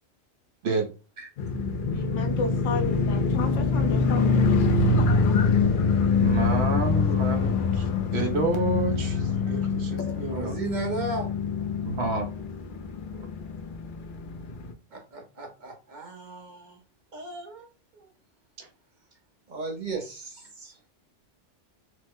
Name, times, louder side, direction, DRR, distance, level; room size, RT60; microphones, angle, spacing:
sound 1, 1.4-14.7, left 4 dB, 60° left, 0.6 m, -25 dB
voice 1, 1.9-4.6, left 4 dB, 85° left, 7 dB, 1.0 m, -33 dB
voice 2, 6.2-7.5 8.1-10.6 11.8-12.3 13.1-13.3 18.6-18.7, right 3 dB, 65° right, 3 dB, 0.9 m, -28 dB
voice 3, 10.2-11.3 14.9-16.8 17.1-17.7 17.9-18.1 19.5-20.2 20.6-20.8, right 3 dB, 50° right, 2 dB, 0.6 m, -35 dB
3.1 x 2.0 x 3.5 m, 0.32 s
omnidirectional pair, 1.3 m